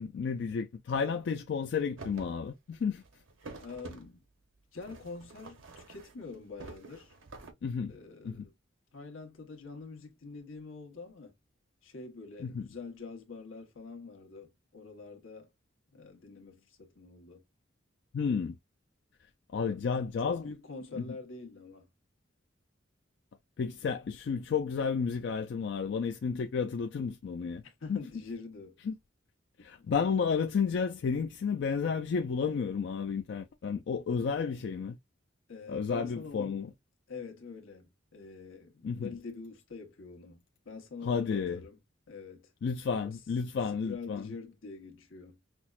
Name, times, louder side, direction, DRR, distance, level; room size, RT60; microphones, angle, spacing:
voice 1, 0.0-3.0 7.6-8.0 8.2-8.5 12.4-12.7 18.1-18.6 19.5-20.5 21.0-21.1 23.6-27.6 27.9-28.0 28.9-29.0 29.6-35.0 35.7-36.7 38.8-39.1 41.0-41.6 42.6-44.3, left 6 dB, 60° left, 0.3 m, -32 dB
sound 1, 2.0-2.3 2.7-4.1 4.8-6.3 6.6-7.5, right 3 dB, 80° right, 0.8 m, -48 dB
voice 2, 3.6-4.2 4.7-7.1 7.9-8.5 8.9-11.3 11.8-15.5 15.9-17.4 19.6-21.9 27.6-28.8 29.8-29.9 35.5-36.6 37.1-41.8 42.1-42.5 42.9-43.2 43.7-45.4, left 4 dB, 85° left, 1.1 m, -45 dB
5.8 x 2.1 x 2.4 m
head